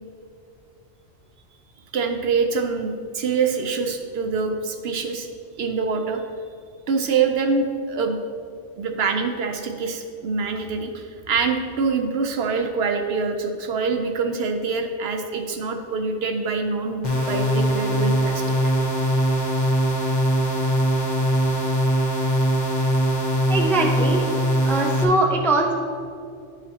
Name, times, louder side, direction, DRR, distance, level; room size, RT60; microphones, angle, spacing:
voice 1, 1.9-5.3 5.6-6.2 6.9-8.2 8.8-18.8, right 5 dB, 65° right, 4 dB, 0.8 m, -25 dB
sound 1, 17.0-25.0, right 1 dB, 40° left, 1.1 m, -21 dB
voice 2, 23.5-24.3 24.6-25.7, right 2 dB, 5° left, 0 dB, 0.4 m, -21 dB
10.5 x 5.0 x 2.8 m, 2.3 s
omnidirectional pair, 1.2 m